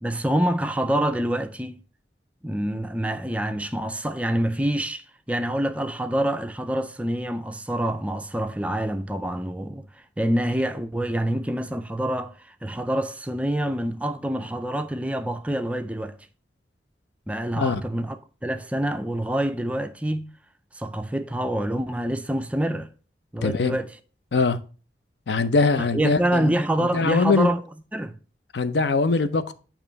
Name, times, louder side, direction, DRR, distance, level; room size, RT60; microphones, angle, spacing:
voice 1, 0.0-1.8 2.4-16.2 17.3-18.2 18.4-20.3 20.7-22.9 23.3-24.0 25.8-27.6 27.9-28.1, right 1 dB, 5° right, 0.3 m, -26 dB
voice 2, 23.4-23.7 24.3-24.6 25.3-26.5 26.8-27.5 28.5-29.5, left 4 dB, 70° left, 0.6 m, -22 dB
8.8 x 3.0 x 5.1 m
head